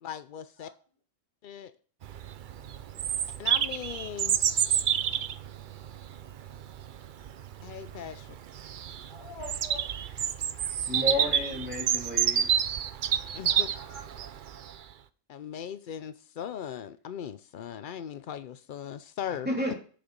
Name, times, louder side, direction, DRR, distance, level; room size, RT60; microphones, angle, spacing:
voice 1, 0.0-0.7 1.4-1.7 3.4-4.4 7.6-8.4 13.3-13.7 15.3-19.5, left 9 dB, 85° left, 13 dB, 0.4 m, -39 dB
Bird vocalization bird call bird song, 2.0-14.7, right 9 dB, 85° right, 0.4 m, -29 dB
voice 2, 9.1-10.0 13.4-14.3, left 1 dB, 20° left, -2 dB, 2.9 m, -46 dB
voice 3, 10.9-12.6 19.4-19.8, equal, 5° right, -2 dB, 2.7 m, -31 dB
7.5 x 6.9 x 5.2 m, 0.41 s
omnidirectional pair, 1.5 m